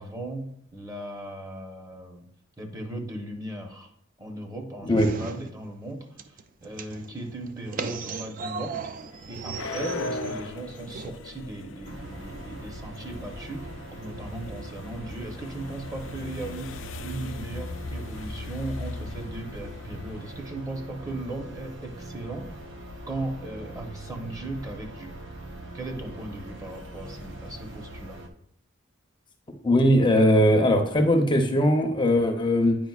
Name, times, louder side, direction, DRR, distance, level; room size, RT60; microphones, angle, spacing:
voice 1, 0.0-2.3 2.6-3.9 4.2-8.8 9.3-22.5 23.1-25.2 25.7-28.2, right 2 dB, 20° right, 3 dB, 0.9 m, -37 dB
sound 1, 5.0-5.9 6.2-11.1, right 5 dB, 45° right, 0.4 m, -37 dB
sound 2, 9.0-20.5, left 3 dB, 85° left, 0.5 m, -39 dB
sound 3, 11.8-28.3, right 1 dB, 70° right, 0.8 m, -41 dB
voice 2, 29.6-32.8, equal, 25° left, 3 dB, 0.7 m, -20 dB
9.2 x 4.9 x 2.4 m, 0.70 s
head